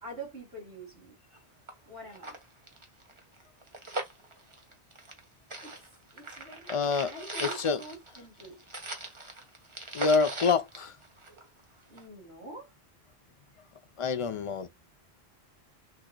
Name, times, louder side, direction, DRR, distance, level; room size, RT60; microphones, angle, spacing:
voice 1, 0.0-1.2 1.9-2.3 5.6-5.8 6.1-8.6 11.9-12.7, right 2 dB, 75° right, 3.7 m, -45 dB
sound 1, 1.3-1.4 1.7-1.8 2.1-5.2 5.5-11.6 12.0-12.1, right 2 dB, 30° right, 1.1 m, -40 dB
voice 2, 6.7-7.8 9.9-10.9 14.0-14.7, left 5 dB, 40° left, 0.4 m, -27 dB
6.4 x 2.8 x 2.2 m
omnidirectional pair, 1.1 m